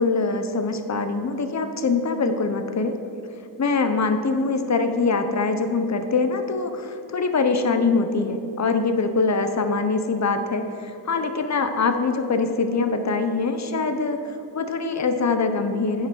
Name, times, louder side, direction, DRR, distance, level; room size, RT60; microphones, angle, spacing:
voice 1, 0.0-3.0 3.6-14.2 14.5-16.1, left 4 dB, 40° left, 7 dB, 0.9 m, -23 dB
9.1 x 5.7 x 6.1 m, 3.0 s
cardioid pair, 65°, 45 cm